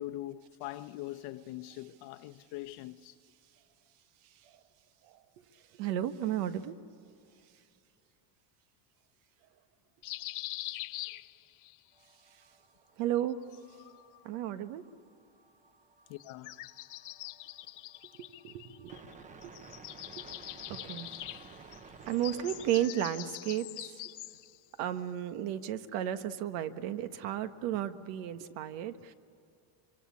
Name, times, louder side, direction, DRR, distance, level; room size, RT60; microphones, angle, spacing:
voice 1, 0.0-3.1 16.1-16.5, left 15 dB, 85° left, 1.1 m, -42 dB
voice 2, 5.5-6.8 12.3-12.4 13.0-13.6 14.2-14.9 18.1-19.1 19.4-19.6 20.2-20.3 20.7-21.1 22.0-24.0 24.8-29.1, right 11 dB, 90° right, 1.5 m, -34 dB
sound 1, 10.0-11.8 13.2-14.2 16.2-19.1 19.4-24.6, left 17 dB, 45° left, 0.5 m, -44 dB
sound 2, 11.9-23.7, right 4 dB, 15° right, 0.6 m, -55 dB
25.5 x 24.5 x 8.5 m
cardioid pair, 175°, 46 cm